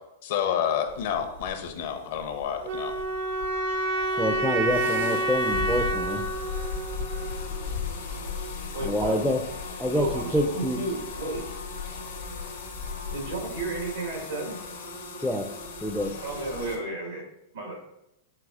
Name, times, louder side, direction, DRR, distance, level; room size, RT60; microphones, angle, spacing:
voice 1, 0.2-2.9, left 8 dB, 65° left, 6 dB, 0.6 m, -29 dB
sound 1, 0.9-16.8, left 4 dB, 85° left, 0.9 m, -37 dB
sound 2, 2.6-7.7, right 1 dB, 65° right, 0.5 m, -28 dB
voice 2, 4.2-6.2 8.8-9.4 9.8-10.8 15.2-15.5 15.8-16.1, equal, ahead, 2 dB, 0.3 m, -27 dB
voice 3, 8.7-9.2 9.9-11.5 13.1-14.6 16.2-17.2 17.5-17.8, right 2 dB, 85° right, -1 dB, 1.3 m, -32 dB
4.7 x 3.7 x 2.3 m, 0.86 s
hypercardioid pair, 125°, 0 cm